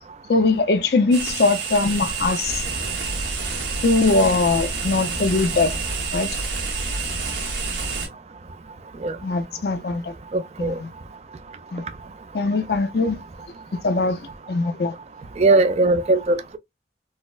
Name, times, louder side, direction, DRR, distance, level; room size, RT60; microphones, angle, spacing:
voice 1, 0.3-2.6 3.8-5.7 6.1-6.3 9.2-10.1 10.6-10.9 11.7-11.8 12.3-13.2 13.8-14.2 14.5-14.9, left 3 dB, 60° left, 0.4 m, -21 dB
sound 1, 1.1-8.1, right 4 dB, 80° right, 1.1 m, -28 dB
voice 2, 10.3-10.8 15.4-16.6, right 2 dB, 35° right, 0.3 m, -19 dB
3.9 x 2.0 x 2.3 m
head